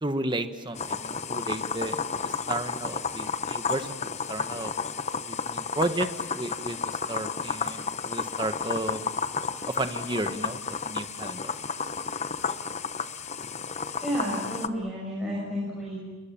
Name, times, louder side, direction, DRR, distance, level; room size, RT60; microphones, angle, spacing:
voice 1, 0.0-4.7 5.3-9.0 9.7-11.5, right 1 dB, 20° right, 8 dB, 1.3 m, -33 dB
sound 1, 0.7-14.7, left 5 dB, 35° left, 0.8 m, -32 dB
voice 2, 14.0-16.0, equal, ahead, -6 dB, 6.0 m, -31 dB
29.0 x 22.0 x 7.4 m, 1.2 s
head